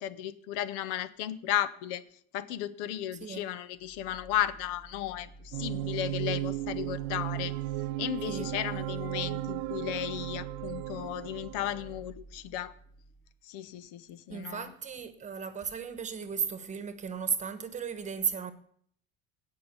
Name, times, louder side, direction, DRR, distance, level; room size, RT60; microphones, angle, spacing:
voice 1, 0.0-2.0 2.3-7.5 8.0-12.7 13.4-14.7, left 12 dB, 75° left, 0.9 m, -34 dB
sound 1, 3.8-13.4, right 1 dB, 15° left, 1.2 m, -51 dB
sound 2, 5.5-12.0, right 16 dB, 90° right, 0.6 m, -35 dB
voice 2, 14.3-18.5, right 6 dB, 25° right, 1.2 m, -35 dB
17.0 x 5.7 x 6.8 m
cardioid pair, 150°, 32 cm